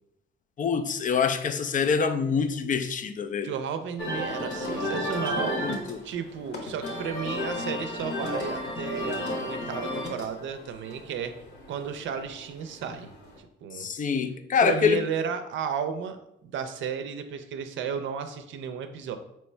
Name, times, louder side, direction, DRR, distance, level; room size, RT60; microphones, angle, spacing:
voice 1, 0.6-3.5 5.2-6.0 13.7-15.0, left 6 dB, 40° left, 0.4 m, -26 dB
voice 2, 3.4-5.6 6.0-11.4 11.7-13.1 13.4-13.9 14.6-19.2, right 7 dB, 75° right, 0.5 m, -33 dB
sound 1, 4.0-13.4, left 1 dB, 60° left, 1.1 m, -33 dB
4.3 x 3.1 x 3.2 m
cardioid pair, 90°, 20 cm